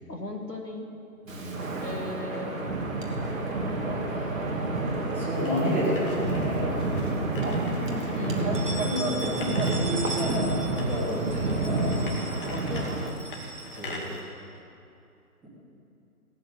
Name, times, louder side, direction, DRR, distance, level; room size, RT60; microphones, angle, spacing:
voice 1, 0.1-0.9 1.8-2.6 8.1-9.0 12.4-13.3, left 3 dB, 85° left, 2 dB, 2.6 m, -37 dB
voice 2, 1.2-1.7 3.9-4.3 5.1-7.1 8.8-11.9 13.7-14.0, left 1 dB, 5° right, -9 dB, 2.9 m, -31 dB
Wind, 1.3-13.1, right 2 dB, 55° right, 2.9 m, -29 dB
sound 1, 5.3-14.2, left 2 dB, 35° left, 2.4 m, -44 dB
sound 2, 5.9-6.8 7.2-7.3 7.7-7.8 8.3-14.6, right 2 dB, 85° right, 3.0 m, -41 dB
17.5 x 9.0 x 8.9 m, 2.7 s
figure-of-eight pair, 150°, 47 cm